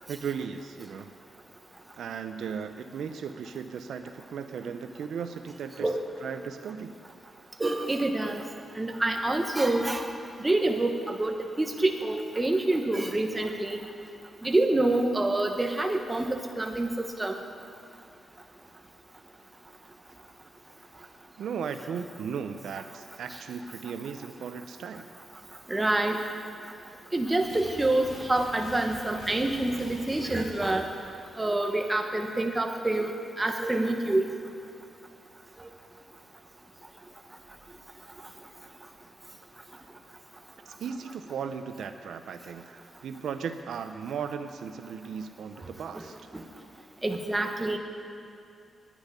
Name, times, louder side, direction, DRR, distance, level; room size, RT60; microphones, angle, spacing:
voice 1, 0.1-1.1 2.0-5.9 6.2-7.0 21.4-25.1 40.7-46.2, right 6 dB, 80° right, 8 dB, 0.7 m, -36 dB
voice 2, 7.6-8.5 8.8-10.1 10.4-13.9 14.4-17.4 25.7-26.2 27.1-30.9 31.4-34.3 45.9-46.0 46.3-46.4 47.0-47.8, right 2 dB, 15° right, 3 dB, 1.3 m, -27 dB
sound 1, 27.4-31.6, left 1 dB, 60° left, 2.6 m, -46 dB
10.5 x 10.0 x 10.0 m, 2.6 s
wide cardioid pair, 120°, 0 cm